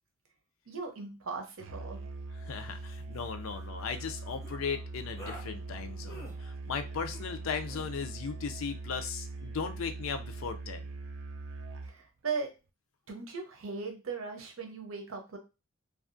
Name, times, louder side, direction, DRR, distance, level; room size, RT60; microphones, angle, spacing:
voice 1, 0.7-2.0 11.8-12.5 13.1-15.4, right 4 dB, 85° right, 4 dB, 0.7 m, -38 dB
Musical instrument, 1.6-12.0, right 3 dB, 65° right, 0.3 m, -42 dB
voice 2, 2.4-10.9, left 6 dB, 85° left, 7 dB, 0.4 m, -37 dB
sound 1, 2.5-2.6 2.9-3.2 4.4-4.6 5.2-5.5 6.1-6.4 7.1-7.3 7.7-7.9, equal, 15° left, 0.5 m, -47 dB
2.7 x 2.3 x 2.5 m, 0.29 s
head